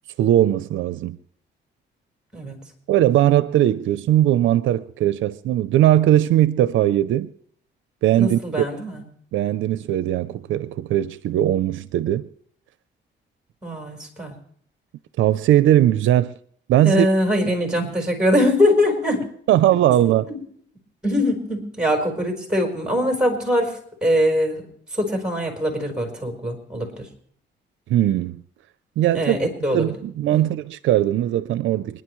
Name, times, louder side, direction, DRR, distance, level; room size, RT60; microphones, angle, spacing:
voice 1, 0.2-1.2 2.9-7.3 8.0-8.4 9.3-12.3 15.2-16.4 16.7-17.1 19.5-20.3 27.9-28.4 29.0-29.4 29.7-32.0, right 12 dB, 80° right, 0.6 m, -19 dB
voice 2, 8.2-9.0 13.6-14.3 16.8-19.2 20.3-20.4 21.0-24.6 24.9-27.1 29.1-29.8 30.3-30.5, equal, 5° right, 4.3 m, -22 dB
27.5 x 10.5 x 3.1 m
cardioid pair, 90°, 20 cm